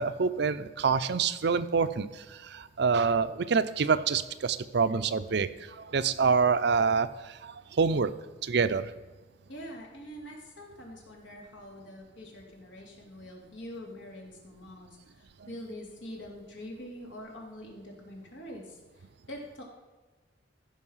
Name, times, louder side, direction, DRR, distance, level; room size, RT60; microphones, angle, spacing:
voice 1, 0.0-8.1 8.4-8.9, right 5 dB, 65° right, 13 dB, 0.5 m, -27 dB
voice 2, 9.5-19.6, equal, 85° left, -1 dB, 2.9 m, -45 dB
14.5 x 5.7 x 5.6 m, 1.2 s
head